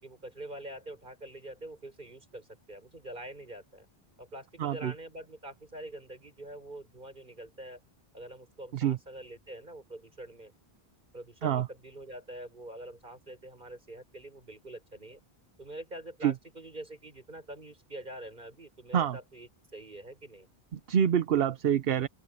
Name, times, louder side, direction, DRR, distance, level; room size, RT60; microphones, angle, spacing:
voice 1, 0.0-3.9 4.2-7.8 8.1-10.5 11.1-15.2 15.6-20.5, right 1 dB, 50° right, 5.6 m, -45 dB
voice 2, 4.6-4.9 8.7-9.0 11.4-11.7 16.2-16.3 18.9-19.2 20.7-22.1, right 9 dB, 70° right, 0.9 m, -26 dB
open air
omnidirectional pair, 1.0 m